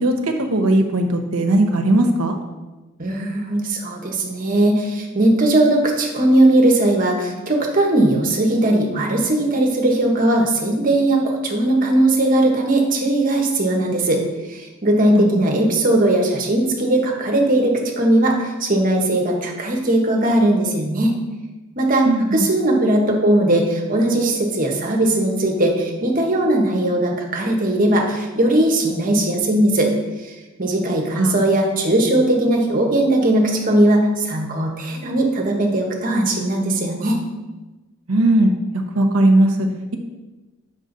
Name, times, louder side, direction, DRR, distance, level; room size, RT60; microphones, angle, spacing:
voice 1, 0.0-2.4 15.1-15.2 22.0-22.5 31.2-31.4 38.1-38.5 38.9-39.7, right 1 dB, 80° right, 5 dB, 1.0 m, -17 dB
voice 2, 3.0-14.2 14.5-21.2 21.8-29.9 30.2-30.3 30.6-37.2, right 1 dB, 40° right, 1 dB, 1.2 m, -18 dB
7.7 x 6.1 x 3.9 m, 1.2 s
head